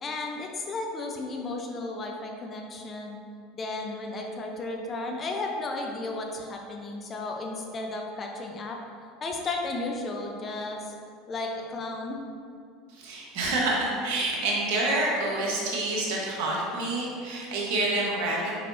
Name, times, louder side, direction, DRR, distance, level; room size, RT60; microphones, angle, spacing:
voice 1, 0.0-3.2 3.5-8.8 9.2-10.9 11.3-12.2, left 2 dB, 35° left, 1 dB, 0.9 m, -34 dB
voice 2, 12.9-18.6, right 2 dB, 65° right, -3 dB, 1.4 m, -28 dB
6.7 x 5.1 x 2.8 m, 2.2 s
hypercardioid pair, 75°, 0 cm